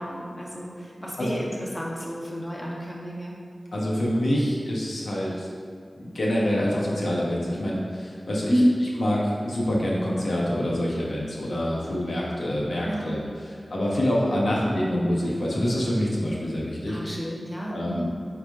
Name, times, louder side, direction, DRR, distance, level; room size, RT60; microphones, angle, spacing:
voice 1, 0.0-3.4 8.5-8.7 12.8-13.2 14.5-14.7 16.8-18.0, equal, 10° left, -4 dB, 1.4 m, -29 dB
voice 2, 3.7-5.5 5.9-8.6 9.0-13.2 13.4-17.0 17.7-18.0, equal, 85° left, -5 dB, 1.2 m, -26 dB
8.8 x 3.6 x 3.7 m, 2.2 s
cardioid pair, 50°, 0 cm